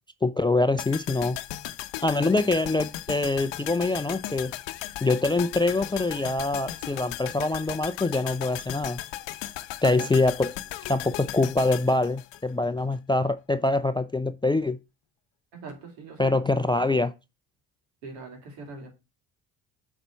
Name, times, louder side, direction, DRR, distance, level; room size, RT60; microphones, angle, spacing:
voice 1, 0.2-1.4 2.0-4.5 5.0-9.0 9.8-10.5 10.9-14.8 16.2-17.1, left 2 dB, 10° left, 0.3 m, -24 dB
sound 1, 0.8-13.0 13.2-13.3, left 14 dB, 60° left, 0.7 m, -37 dB
voice 2, 15.5-16.8 18.0-18.9, right 3 dB, 80° right, 2.7 m, -42 dB
8.0 x 4.1 x 4.6 m
hypercardioid pair, 55°, 49 cm